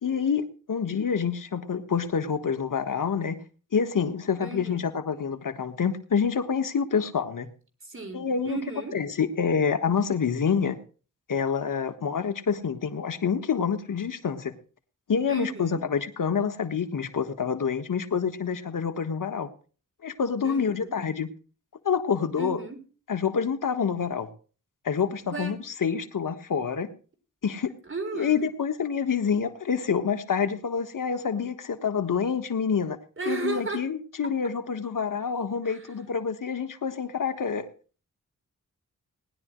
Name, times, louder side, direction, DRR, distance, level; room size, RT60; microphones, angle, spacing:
voice 1, 0.0-3.4 3.7-7.5 8.1-8.6 8.9-10.8 11.3-14.6 15.1-19.5 20.0-21.3 21.8-22.6 23.1-24.3 24.8-26.9 27.4-27.7 28.1-33.0 33.3-37.7, left 6 dB, 75° left, 8 dB, 1.4 m, -27 dB
voice 2, 4.4-4.9 7.8-9.0 15.3-15.8 20.4-21.0 22.4-22.8 25.3-25.6 27.9-28.4 33.2-33.8 35.6-35.9, right 3 dB, 40° right, 4 dB, 3.8 m, -34 dB
19.5 x 11.0 x 3.1 m, 0.37 s
wide cardioid pair, 80°, 32 cm